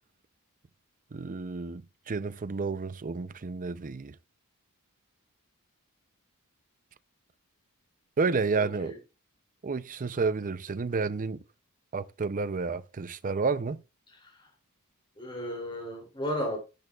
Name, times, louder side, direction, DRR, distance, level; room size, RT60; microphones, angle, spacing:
voice 1, 1.1-4.1 8.2-8.9 9.6-11.4 11.9-13.8, right 4 dB, 35° right, 0.5 m, -30 dB
voice 2, 8.6-9.0 15.2-16.6, equal, 20° left, 3.0 m, -34 dB
12.5 x 10.0 x 2.4 m
head